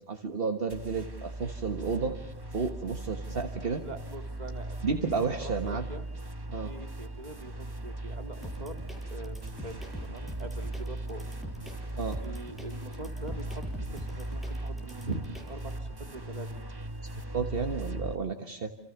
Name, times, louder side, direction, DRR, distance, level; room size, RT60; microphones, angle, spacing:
voice 1, 0.1-2.2 2.5-3.8 4.8-5.8 6.5-6.7 12.0-12.2 15.1-15.2 17.3-18.7, right 5 dB, 65° right, 5 dB, 1.6 m, -31 dB
sound 1, 0.7-18.2, right 1 dB, 20° right, 1.4 m, -38 dB
voice 2, 3.8-6.0 6.6-8.8 9.1-9.7 10.0-11.2 12.2-16.6, right 2 dB, 40° right, 4 dB, 2.6 m, -44 dB
sound 2, 8.4-15.7, equal, ahead, 7.1 m, -43 dB
28.5 x 28.0 x 7.0 m, 0.76 s
omnidirectional pair, 1.1 m